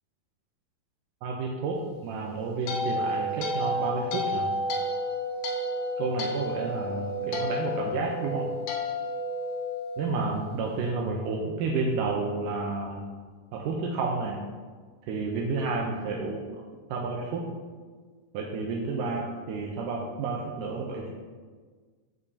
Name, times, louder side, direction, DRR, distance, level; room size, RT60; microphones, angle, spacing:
voice 1, 1.2-4.5 6.0-8.5 10.0-13.1 13.5-14.4 15.1-16.4 16.9-17.4 18.3-21.1, right 4 dB, 80° right, -1 dB, 2.0 m, -30 dB
sound 1, 2.1-10.5, left 1 dB, 75° left, 2.8 m, -31 dB
13.5 x 5.6 x 2.7 m, 1.5 s
omnidirectional pair, 4.5 m